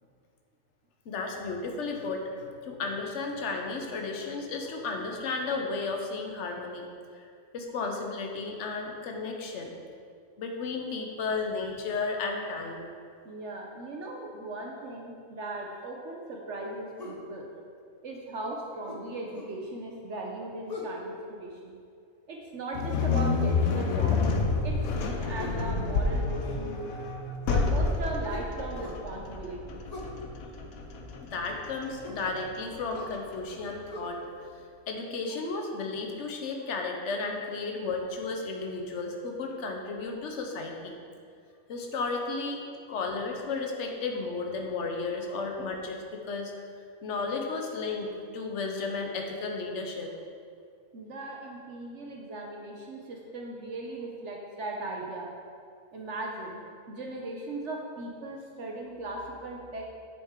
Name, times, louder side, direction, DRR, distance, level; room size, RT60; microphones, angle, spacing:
voice 1, 1.0-6.9 7.1-7.3 7.5-9.7 10.4-12.9 31.2-34.2 34.9-41.0 41.7-42.6 42.9-46.5 47.0-50.1, left 3 dB, 60° left, 2 dB, 1.2 m, -33 dB
voice 2, 13.2-17.5 18.0-21.8 22.3-24.2 24.6-26.8 27.5-29.8 45.2-45.3 50.9-55.3 55.9-59.8, right 2 dB, 60° right, 0 dB, 1.1 m, -38 dB
sound 1, 17.0-17.2 18.9-19.6 20.7-21.0 23.1-23.4 25.4-25.7 28.3-29.0 29.9-30.2 32.0-32.3 32.9-33.2 33.9-34.0, left 1 dB, 35° left, 1.0 m, -41 dB
sound 2, 22.7-33.9, left 4 dB, 85° left, 1.2 m, -29 dB
8.7 x 7.2 x 3.7 m, 2.3 s
omnidirectional pair, 1.4 m